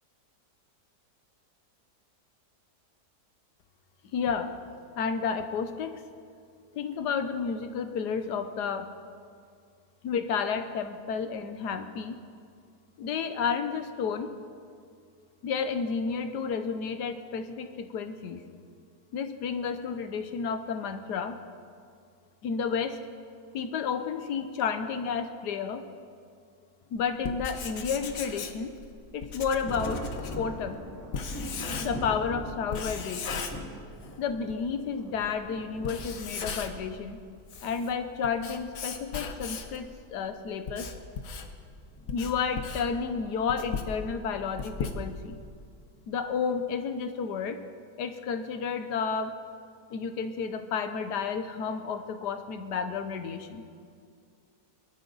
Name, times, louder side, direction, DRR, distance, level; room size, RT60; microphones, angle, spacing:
voice 1, 4.1-4.5 5.0-6.0 6.7-8.9 10.0-12.2 13.0-14.3 15.4-18.4 19.1-21.4 22.4-23.0 23.5-25.8 26.9-28.7 29.1-30.0 30.4-30.8 31.8-33.4 34.2-37.2 37.6-40.9 42.1-45.4 46.1-47.6 48.0-49.4 49.9-53.6, left 6 dB, 85° left, 9 dB, 1.5 m, -31 dB
Writing, 27.1-32.2 32.7-34.2 34.5-34.6 35.2-35.3 35.7-36.9 37.3-39.8 40.4-45.4, left 5 dB, 60° left, 1.4 m, -37 dB
Thunder, 29.6-36.7 37.7-37.8 39.2-39.5 39.9-40.0 41.9-42.1 42.8-43.2, equal, 10° left, 2.1 m, -41 dB
23.0 x 12.5 x 4.0 m, 2.3 s
omnidirectional pair, 1.7 m